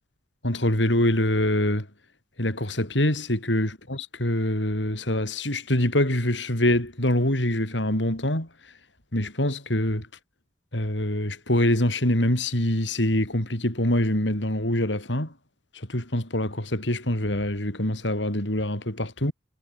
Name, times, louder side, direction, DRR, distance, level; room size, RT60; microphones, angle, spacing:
voice 1, 0.4-1.9 2.4-8.5 9.1-10.1 10.7-15.3 15.7-19.3, left 1 dB, 80° left, 6.9 m, -24 dB
head